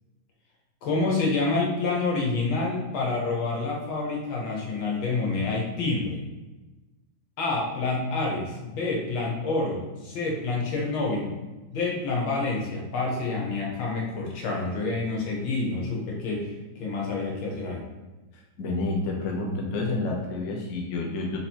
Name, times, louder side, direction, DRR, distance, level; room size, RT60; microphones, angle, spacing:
voice 1, 0.8-6.2 7.4-11.3 11.7-17.8, left 3 dB, 85° left, -2 dB, 1.8 m, -28 dB
voice 2, 18.3-21.5, left 2 dB, 55° left, -1 dB, 0.9 m, -29 dB
4.1 x 2.8 x 4.4 m, 1.1 s
omnidirectional pair, 2.2 m